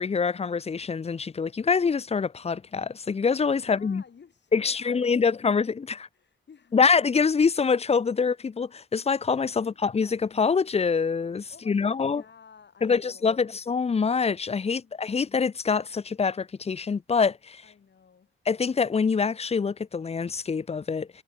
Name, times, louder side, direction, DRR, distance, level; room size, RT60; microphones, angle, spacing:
voice 1, 0.0-4.0 4.5-6.1 6.7-12.2 12.8-17.6 18.5-21.1, left 5 dB, 30° left, 0.6 m, -25 dB
voice 2, 3.7-5.7 6.1-6.9 9.5-10.1 11.5-13.6 14.7-15.3 17.6-18.3, left 6 dB, 55° left, 5.9 m, -54 dB
cardioid pair, 80°, 21 cm